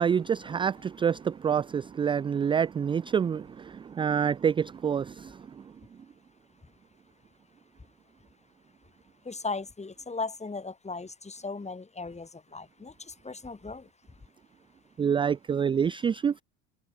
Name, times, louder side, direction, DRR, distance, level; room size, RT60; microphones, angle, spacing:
voice 1, 0.0-5.4 15.0-16.3, right 7 dB, 15° right, 0.3 m, -27 dB
voice 2, 9.2-13.9, left 3 dB, 15° left, 2.7 m, -37 dB
hypercardioid pair, 70°, 43 cm